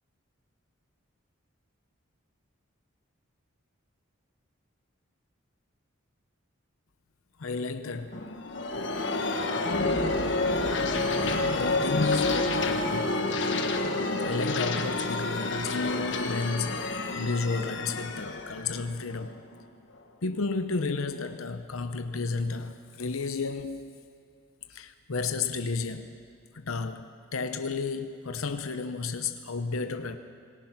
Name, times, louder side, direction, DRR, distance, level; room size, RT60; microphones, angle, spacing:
voice 1, 7.4-8.3 11.1-13.2 13.5-13.8 14.2-16.9 17.1-19.4 20.2-23.9 24.7-26.2 26.5-30.2, left 4 dB, 90° left, 0.8 m, -32 dB
sound 1, 8.1-19.6, left 2 dB, 60° left, 1.4 m, -29 dB
27.0 x 19.5 x 6.0 m
head